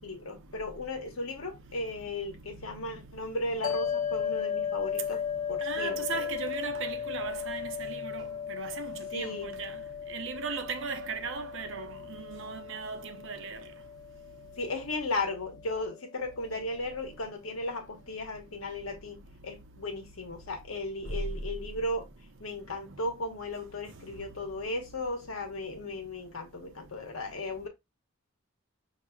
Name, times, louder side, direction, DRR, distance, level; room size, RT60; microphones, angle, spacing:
voice 1, 0.0-5.2 5.5-6.1 9.1-9.5 14.6-22.1 22.4-27.7, left 2 dB, 80° left, 1.2 m, -36 dB
sound 1, 3.6-16.1, left 8 dB, 20° left, 0.6 m, -36 dB
voice 2, 5.6-9.8 10.1-13.6, right 5 dB, 65° right, 0.7 m, -37 dB
5.7 x 2.8 x 2.3 m
head